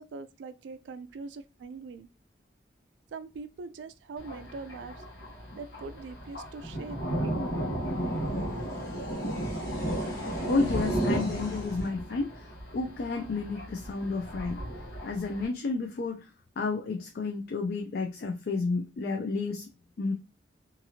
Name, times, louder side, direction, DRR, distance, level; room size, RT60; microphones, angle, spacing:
voice 1, 0.0-2.1 3.1-5.0 5.5-7.1, right 4 dB, 80° right, 0.3 m, -42 dB
sound 1, 3.1-3.2 3.8-3.9 4.5-11.9, equal, 20° left, 1.0 m, -48 dB
Thunder, 4.2-15.5, right 1 dB, 75° left, 1.1 m, -34 dB
voice 2, 10.5-12.5 12.7-14.6 15.0-16.3 16.6-19.7 20.0-20.1, left 3 dB, 55° left, 0.4 m, -31 dB
2.7 x 2.5 x 2.7 m
head